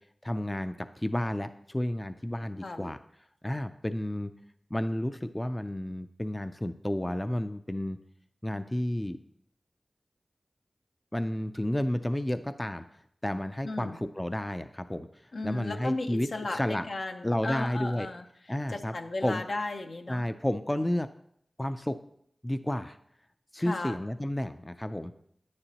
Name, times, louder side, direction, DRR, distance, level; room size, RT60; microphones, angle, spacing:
voice 1, 0.2-3.0 3.4-4.3 4.7-8.0 8.4-9.2 11.1-12.8 13.2-15.1 15.4-16.8 17.2-18.1 18.5-18.9 19.2-19.4 20.1-21.1 21.6-22.0 22.4-23.0 23.5-25.1, left 1 dB, 15° left, 10 dB, 0.4 m, -31 dB
voice 2, 13.6-14.0 15.3-18.2 18.7-20.2 23.6-24.0, left 2 dB, 70° left, 6 dB, 0.7 m, -35 dB
9.8 x 9.7 x 2.9 m, 0.68 s
wide cardioid pair, 65°, 0 cm